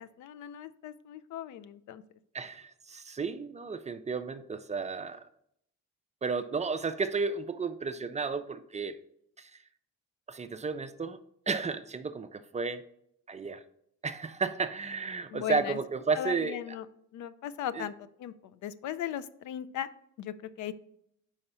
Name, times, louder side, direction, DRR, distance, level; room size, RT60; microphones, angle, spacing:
voice 1, 0.0-2.0 15.3-15.8 16.2-16.8 17.1-17.9 18.2-18.3 18.6-19.9 20.2-20.7, left 11 dB, 75° left, 14 dB, 0.5 m, -37 dB
voice 2, 2.3-5.2 6.2-9.0 9.4-9.5 10.3-11.2 11.5-12.8 13.3-13.6 14.0-16.8 17.7-17.9, right 4 dB, 25° right, 11 dB, 0.4 m, -33 dB
4.9 x 4.3 x 5.4 m, 0.72 s
cardioid pair, 90°, 30 cm